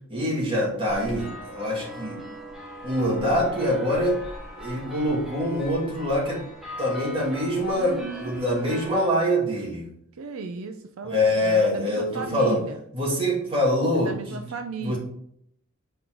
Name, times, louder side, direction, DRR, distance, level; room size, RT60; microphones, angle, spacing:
voice 1, 0.1-2.2 2.8-4.2 4.6-6.4 6.8-9.9 11.0-12.6 12.9-14.4 14.8-15.0, left 1 dB, 25° right, -4 dB, 2.0 m, -24 dB
sound 1, 0.9-9.1, equal, ahead, 1.3 m, -40 dB
voice 2, 7.8-8.4 10.2-12.8 13.9-15.0, right 4 dB, 85° right, 7 dB, 0.5 m, -36 dB
5.4 x 4.5 x 3.8 m, 0.71 s
head